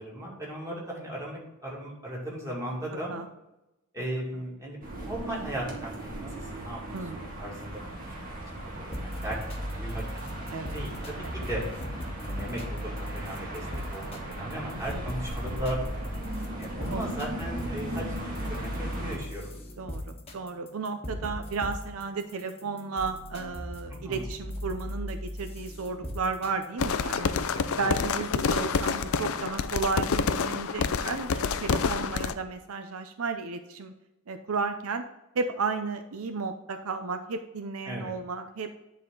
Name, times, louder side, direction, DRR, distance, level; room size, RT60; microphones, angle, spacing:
voice 1, 0.0-3.1 3.9-6.8 7.1-9.4 9.8-10.0 10.4-10.5 10.7-11.7 12.2-15.8 16.6-19.6 24.0-24.3 27.6-27.9 37.9-38.1, right 1 dB, 15° right, -4 dB, 2.4 m, -37 dB
sound 1, 4.8-19.2, right 1 dB, 40° right, 1.7 m, -38 dB
voice 2, 6.9-7.3 10.5-10.8 11.2-11.4 14.9-15.0 16.9-17.1 19.8-27.3 27.7-33.9 34.3-35.0 35.3-38.8, right 4 dB, 80° right, 8 dB, 0.6 m, -33 dB
sound 2, 8.9-27.2, equal, 30° left, 1.2 m, -38 dB
sound 3, 26.8-32.3, left 5 dB, 75° left, 0.5 m, -28 dB
10.0 x 4.2 x 3.8 m, 0.94 s
head